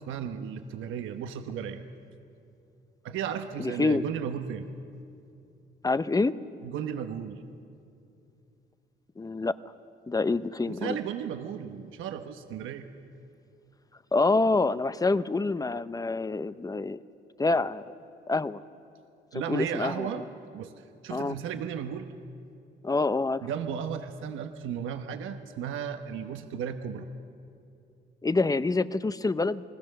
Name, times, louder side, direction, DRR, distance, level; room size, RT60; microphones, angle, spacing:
voice 1, 0.1-1.8 3.0-4.7 6.6-7.4 10.7-12.9 19.3-20.2 20.5-22.1 23.4-27.1, right 8 dB, 85° right, 7 dB, 1.1 m, -35 dB
voice 2, 3.6-4.0 5.8-6.3 9.2-9.5 10.1-11.0 14.1-17.0 17.4-17.8 18.3-18.6 19.3-20.3 21.1-21.3 22.8-23.5 28.2-29.6, left 3 dB, 20° left, 14 dB, 0.7 m, -26 dB
28.0 x 20.5 x 6.7 m, 2.7 s
cardioid pair, 90°, 20 cm